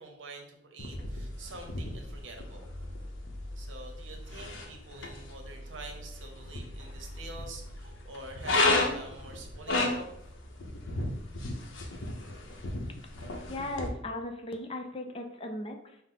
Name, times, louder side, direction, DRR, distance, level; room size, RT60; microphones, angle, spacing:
voice 1, 0.0-2.7 3.6-10.2, right 2 dB, 75° right, 3 dB, 0.8 m, -47 dB
sound 1, 0.8-13.9, left 2 dB, 85° left, 0.7 m, -34 dB
voice 2, 13.5-16.0, left 1 dB, 30° left, 4 dB, 0.5 m, -37 dB
5.6 x 2.0 x 3.7 m, 0.77 s
head